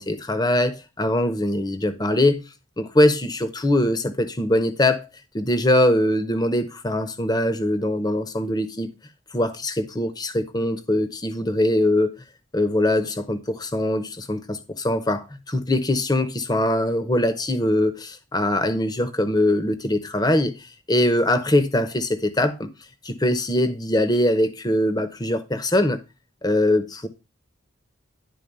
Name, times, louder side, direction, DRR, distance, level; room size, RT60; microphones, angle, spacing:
voice 1, 0.0-2.4 2.8-5.1 5.3-8.9 9.3-12.1 12.5-22.7 23.0-26.0 26.4-27.1, left 1 dB, 20° left, 0.8 m, -22 dB
11.0 x 4.0 x 5.4 m
head